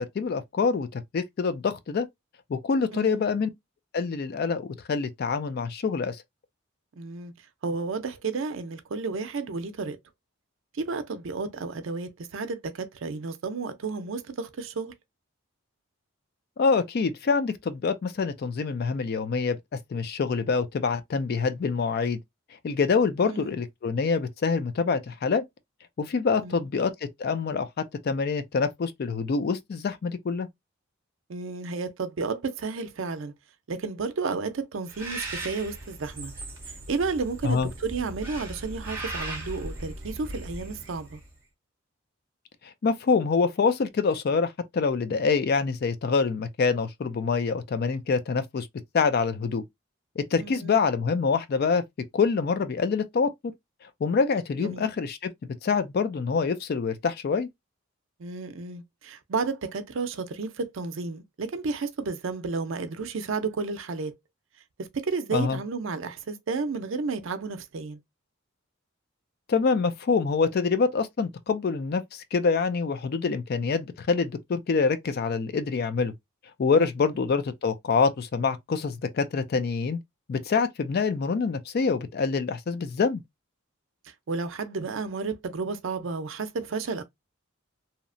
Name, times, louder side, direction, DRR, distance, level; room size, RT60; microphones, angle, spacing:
voice 1, 0.2-2.1 2.5-3.5 3.9-6.2 16.6-19.6 19.9-22.2 22.6-25.4 26.0-26.9 27.2-30.5 37.4-37.7 42.8-48.7 48.9-49.6 50.2-51.8 52.1-53.5 54.0-55.3 55.6-57.5 65.3-65.6 69.5-76.1 76.6-80.0 80.3-83.2, left 5 dB, 50° left, 0.3 m, -26 dB
voice 2, 7.0-7.3 7.6-10.0 10.7-14.9 23.2-23.5 26.4-26.7 31.3-33.3 33.7-36.3 36.9-41.2 50.4-50.8 54.6-54.9 58.2-64.2 64.8-68.0 76.8-77.1 84.0-87.0, right 4 dB, 65° right, 0.5 m, -32 dB
Bird, 34.9-41.3, right 2 dB, 10° right, 0.8 m, -38 dB
2.8 x 2.0 x 2.5 m
head